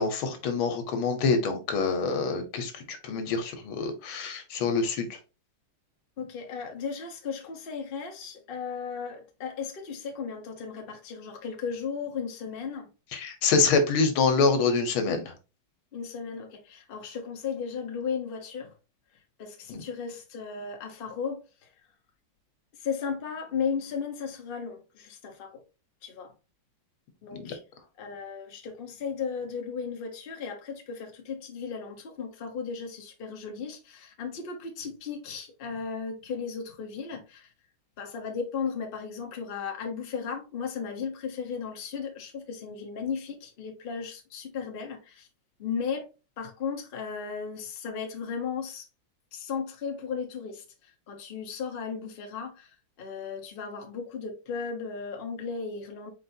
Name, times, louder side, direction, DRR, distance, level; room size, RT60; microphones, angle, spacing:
voice 1, 0.0-5.2 13.1-15.3 19.7-19.8 27.3-27.5, left 4 dB, 85° left, 1.9 m, -26 dB
voice 2, 6.2-12.9 15.9-18.7 19.4-21.4 22.8-25.6 26.0-26.3 27.2-27.6 28.0-37.5 38.0-45.3 45.6-46.1 46.4-48.8 49.3-50.6 51.1-52.7 53.0-56.1, left 6 dB, 40° left, 0.8 m, -35 dB
4.4 x 4.4 x 2.7 m
omnidirectional pair, 2.2 m